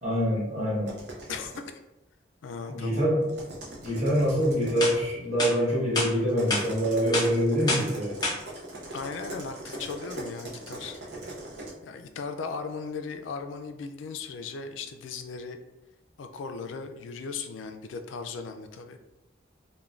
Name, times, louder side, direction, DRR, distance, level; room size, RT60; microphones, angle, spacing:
voice 1, 0.0-0.9 2.7-3.3 3.8-8.2, equal, 40° right, -7 dB, 1.1 m, -25 dB
sound 1, 0.9-1.7 3.2-5.0 6.3-11.7, right 1 dB, 65° right, 0.6 m, -41 dB
voice 2, 2.4-3.0 8.9-11.0 11.8-15.6 16.2-19.0, left 5 dB, 90° left, 7 dB, 0.3 m, -37 dB
sound 2, 4.3-4.4 4.8-4.9 5.4-5.5 6.0-6.1 6.5-6.6 7.1-7.3 7.7-7.9 8.2-8.3, left 2 dB, 20° left, 0.7 m, -26 dB
3.1 x 2.2 x 2.4 m, 0.94 s
head